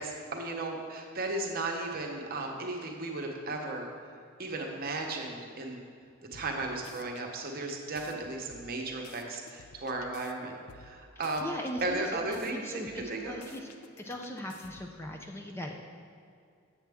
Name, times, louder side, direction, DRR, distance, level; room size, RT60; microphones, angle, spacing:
voice 1, 0.0-3.9 4.4-5.8 6.3-11.5 11.8-13.4, right 2 dB, 45° right, 1 dB, 0.9 m, -35 dB
sound 1, 6.3-7.2 7.7-10.3 10.7-12.5 12.9-15.0, left 6 dB, 90° left, 0.4 m, -54 dB
voice 2, 11.4-13.7 14.0-15.7, left 1 dB, 10° left, 2 dB, 0.3 m, -39 dB
7.4 x 7.3 x 3.5 m, 2.3 s
head